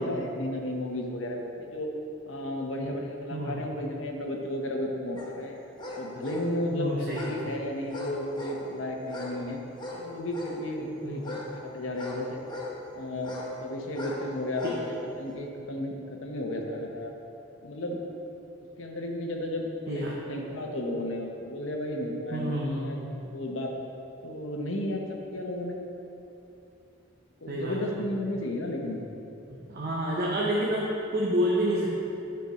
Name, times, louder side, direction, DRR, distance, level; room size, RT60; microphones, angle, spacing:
voice 1, 0.0-1.9 2.3-5.6 6.0-9.6 10.0-12.4 12.9-17.1 17.6-18.0 18.8-23.0 23.2-23.7 24.2-25.0 25.3-25.8 27.4-29.1, left 1 dB, 80° left, 1 dB, 0.9 m, -33 dB
sound 1, 5.2-5.3 5.8-6.5 7.1-7.4 7.9-8.6 9.0-9.4 9.7-10.6 11.2-12.8 13.2-13.5 13.9-14.2 14.5-14.9 15.3-15.4, left 1 dB, 25° left, 0.9 m, -39 dB
voice 2, 6.7-7.5 11.0-11.2 19.9-20.2 22.3-23.0 27.5-28.0 29.7-31.9, equal, 50° right, -5 dB, 0.9 m, -29 dB
9.9 x 4.5 x 4.2 m, 2.8 s
head